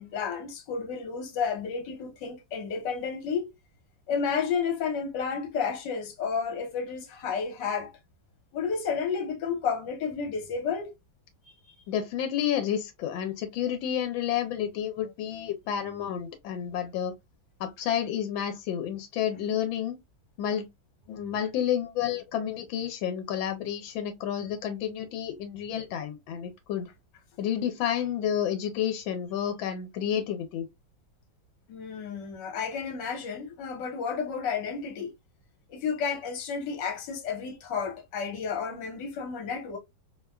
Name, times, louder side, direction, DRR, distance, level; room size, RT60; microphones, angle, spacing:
voice 1, 0.0-3.5 4.1-7.9 8.5-10.9 31.7-35.1 35.7-39.8, left 6 dB, 70° left, 1.5 m, -31 dB
voice 2, 11.9-17.1 17.6-20.0 20.4-20.7 21.1-26.9 27.4-30.7, left 9 dB, 90° left, 1.4 m, -30 dB
3.2 x 2.2 x 2.2 m
omnidirectional pair, 2.1 m